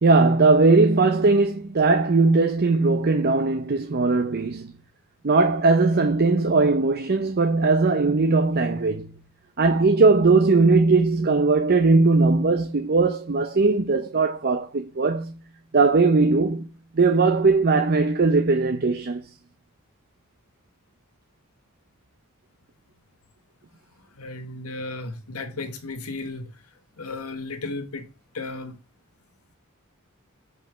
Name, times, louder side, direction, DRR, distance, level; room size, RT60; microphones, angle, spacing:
voice 1, 0.0-4.7 5.2-9.1 9.6-15.3 15.7-16.7 17.0-19.2, right 3 dB, 45° right, 0.7 m, -19 dB
voice 2, 24.2-26.5 27.0-28.1 28.3-28.8, left 3 dB, 85° left, 1.2 m, -34 dB
5.4 x 5.3 x 5.9 m
head